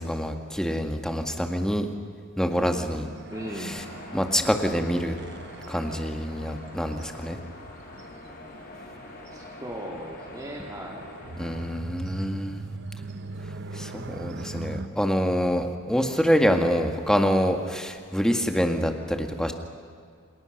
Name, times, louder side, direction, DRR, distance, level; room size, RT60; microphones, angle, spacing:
voice 1, 0.0-1.9 2.4-3.1 3.6-3.7 4.1-5.1 5.7-7.4 11.4-12.6 13.7-19.5, equal, 5° left, 4 dB, 2.0 m, -26 dB
sound 1, 2.5-14.9, right 3 dB, 55° right, 1.1 m, -42 dB
sound 2, 3.3-11.7, left 1 dB, 45° left, 4.3 m, -44 dB
voice 2, 3.3-3.8 9.3-11.1, right 1 dB, 15° right, -1 dB, 2.5 m, -37 dB
29.5 x 27.0 x 6.7 m, 2.2 s
head